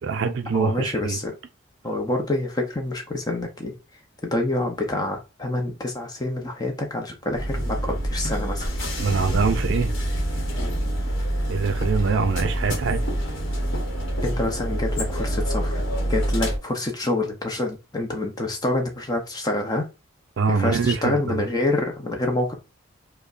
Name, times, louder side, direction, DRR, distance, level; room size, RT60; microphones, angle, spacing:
voice 1, 0.0-1.2 9.0-9.9 11.5-13.0 20.4-21.5, right 5 dB, 55° right, 0.4 m, -24 dB
voice 2, 0.5-1.4 1.8-3.7 4.2-8.7 14.2-15.8 16.1-19.9 20.5-22.5, left 2 dB, 20° left, 0.6 m, -27 dB
sound 1, 7.3-16.6, equal, 60° left, 1.0 m, -26 dB
5.0 x 2.1 x 2.4 m
head